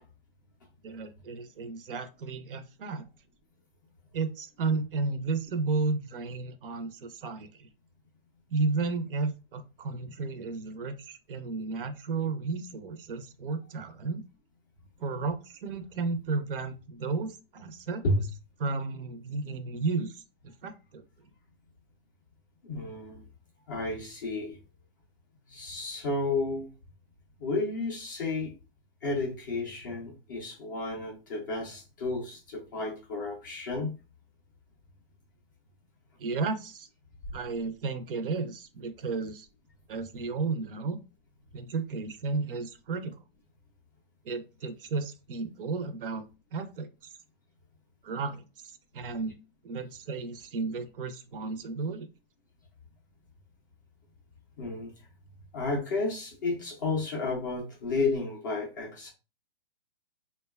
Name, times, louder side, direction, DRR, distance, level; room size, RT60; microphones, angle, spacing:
voice 1, 0.8-3.0 4.1-7.7 8.5-14.2 15.0-18.0 18.6-20.2 20.6-21.0 36.2-36.9 37.3-39.5 39.9-41.0 41.5-43.2 44.2-46.2 46.5-46.9 48.0-49.4 49.6-52.1, right 4 dB, 60° right, 9 dB, 0.5 m, -33 dB
voice 2, 22.6-23.2 23.7-24.6 25.5-26.7 27.4-28.5 29.0-33.9 54.6-54.9 55.5-59.1, left 3 dB, 20° left, -2 dB, 0.3 m, -32 dB
2.6 x 2.2 x 2.2 m, 0.31 s
hypercardioid pair, 150°, 31 cm